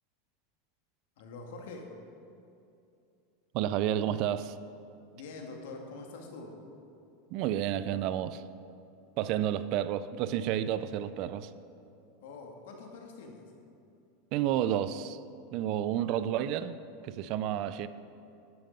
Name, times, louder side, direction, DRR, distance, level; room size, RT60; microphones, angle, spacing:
voice 1, 1.2-1.9 5.1-6.5 12.2-13.5, left 3 dB, 75° left, 1 dB, 1.9 m, -45 dB
voice 2, 3.5-4.6 7.3-8.4 9.2-11.5 14.3-15.2 15.5-16.8 17.0-17.9, right 11 dB, 50° right, 14 dB, 0.4 m, -30 dB
11.5 x 7.5 x 5.3 m, 2.6 s
supercardioid pair, 140°, 0 cm